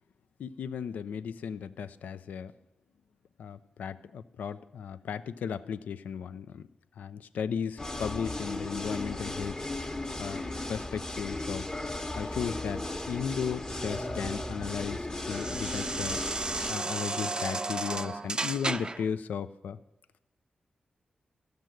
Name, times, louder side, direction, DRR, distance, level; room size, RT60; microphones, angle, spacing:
voice 1, 0.4-2.5 3.4-6.7 7.0-9.9 10.2-10.4 10.7-11.7 12.1-16.2 16.7-19.8, left 7 dB, 85° left, 13 dB, 0.4 m, -35 dB
sound 1, 7.8-16.7, left 2 dB, 30° left, 1.0 m, -36 dB
sound 2, 13.3-19.1, right 3 dB, 30° right, 0.4 m, -35 dB
13.5 x 6.6 x 9.0 m, 0.93 s
cardioid pair, 50°, 3 cm